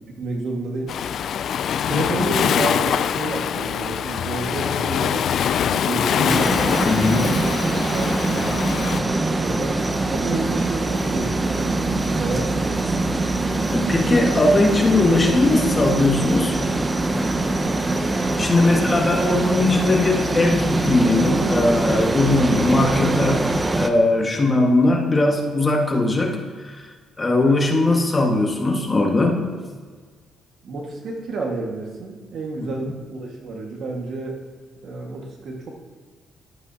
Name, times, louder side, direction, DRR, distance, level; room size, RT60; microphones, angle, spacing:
voice 1, 0.2-0.9 1.9-5.3 5.6-6.5 7.1-7.3 7.9-8.7 9.2-9.8 10.1-11.9 12.2-12.9 18.5-19.6 30.6-34.4 34.8-35.7, right 3 dB, 65° right, 0 dB, 1.7 m, -30 dB
Waves surf, 0.9-9.0, left 8 dB, 65° left, 0.3 m, -23 dB
sound 1, 6.3-23.9, right 2 dB, 20° right, 0.7 m, -23 dB
voice 2, 6.9-7.3 13.7-16.6 18.0-23.5 23.8-26.8 27.2-29.5 32.6-32.7, left 2 dB, 25° left, 0 dB, 1.7 m, -19 dB
12.0 x 11.0 x 2.9 m, 1.5 s
cardioid pair, 90°, 0 cm